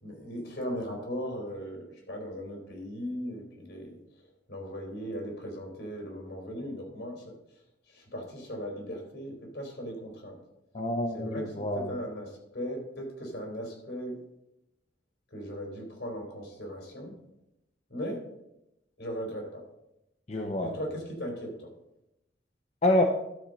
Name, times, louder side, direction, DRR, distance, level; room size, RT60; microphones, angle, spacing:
voice 1, 0.0-4.0 4.5-7.3 7.9-10.4 11.1-11.4 11.7-14.1 15.3-17.1 17.9-18.2 19.0-19.6 20.6-21.7, equal, 70° left, 1 dB, 3.4 m, -38 dB
voice 2, 10.7-12.0 20.3-20.8 22.8-23.0, left 1 dB, 35° left, 3 dB, 0.7 m, -27 dB
12.0 x 4.4 x 6.2 m, 0.86 s
head